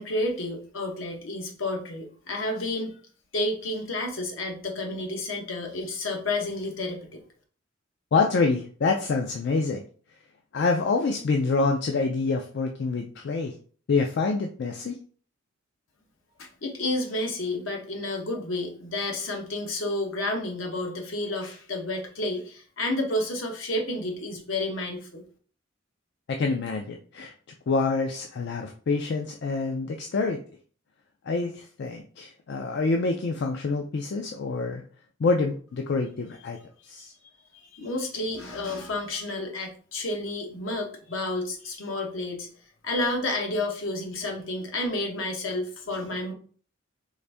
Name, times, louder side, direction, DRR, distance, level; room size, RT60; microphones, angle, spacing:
voice 1, 0.0-2.9 3.3-7.2 16.4-25.2 37.5-42.5 42.8-46.3, left 2 dB, 75° left, 2 dB, 1.0 m, -30 dB
voice 2, 8.1-9.8 10.5-13.5 13.9-15.0 26.3-27.3 27.7-30.4 31.2-34.8 35.2-36.6 36.8-37.1, left 4 dB, 55° left, 3 dB, 0.4 m, -26 dB
3.8 x 2.6 x 3.4 m, 0.43 s
head